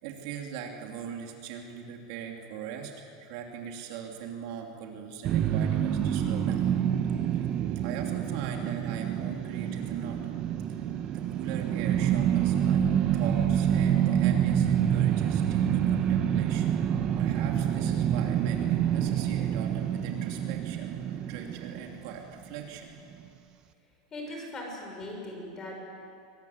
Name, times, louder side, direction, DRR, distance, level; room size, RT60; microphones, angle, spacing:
voice 1, 0.0-6.7 7.3-7.5 7.7-10.8 11.1-16.9 17.2-21.0 21.3-23.0 24.3-24.5, right 7 dB, 55° right, 2 dB, 2.9 m, -41 dB
sound 1, 5.2-22.4, right 9 dB, 30° right, 1.1 m, -27 dB
voice 2, 24.1-25.8, left 1 dB, 20° left, 1 dB, 6.0 m, -39 dB
24.0 x 20.5 x 9.5 m, 2.6 s
supercardioid pair, 160°, 3 cm